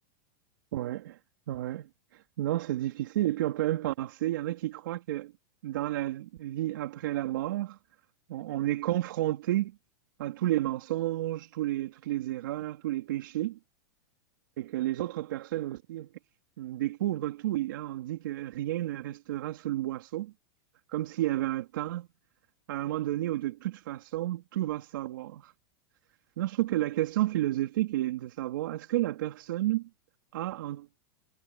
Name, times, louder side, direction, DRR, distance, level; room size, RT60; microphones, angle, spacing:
voice 1, 0.7-1.2 1.5-5.3 5.6-7.8 8.3-9.7 10.2-13.6 14.6-16.1 16.6-20.3 20.9-22.1 22.7-25.5 26.4-29.9 30.3-31.0, right 15 dB, 75° right, 3.1 m, -31 dB
supercardioid pair, 150°, 11 cm